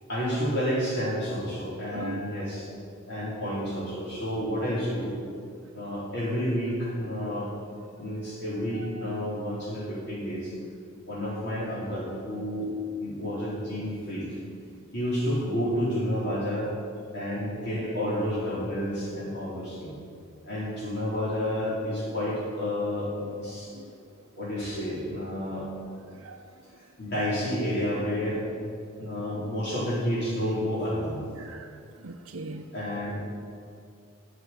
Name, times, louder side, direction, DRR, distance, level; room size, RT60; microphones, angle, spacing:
voice 1, 0.1-2.7 3.1-5.2 5.7-7.5 8.0-10.5 11.1-12.7 13.0-14.3 14.9-16.7 17.1-20.0 20.4-23.7 24.4-25.7 27.0-28.4 29.0-31.2 32.7-33.2, equal, 50° left, -8 dB, 4.6 m, -30 dB
voice 2, 1.9-2.2 8.7-9.1 23.5-24.0 26.2-26.4 31.3-31.7 32.0-32.7, right 3 dB, 80° right, 2 dB, 0.7 m, -40 dB
14.0 x 7.8 x 9.3 m, 2.3 s
head